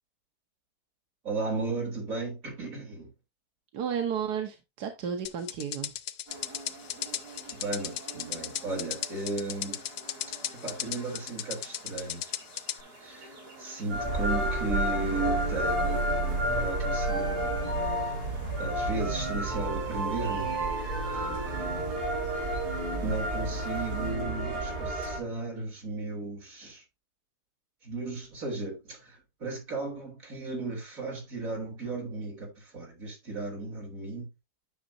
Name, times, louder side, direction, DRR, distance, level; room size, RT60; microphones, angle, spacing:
voice 1, 1.2-3.1 7.5-9.8 10.6-12.2 13.0-17.5 18.6-20.5 21.1-22.1 23.0-26.8 27.8-34.3, right 3 dB, 55° right, 3.9 m, -35 dB
voice 2, 3.7-5.9, right 7 dB, 85° right, 1.5 m, -32 dB
sound 1, 5.3-12.8, left 11 dB, 75° left, 1.1 m, -35 dB
sound 2, 6.3-24.1, right 2 dB, 70° right, 4.4 m, -49 dB
sound 3, 13.9-25.2, right 1 dB, 35° right, 2.9 m, -30 dB
10.0 x 6.3 x 2.7 m
omnidirectional pair, 1.7 m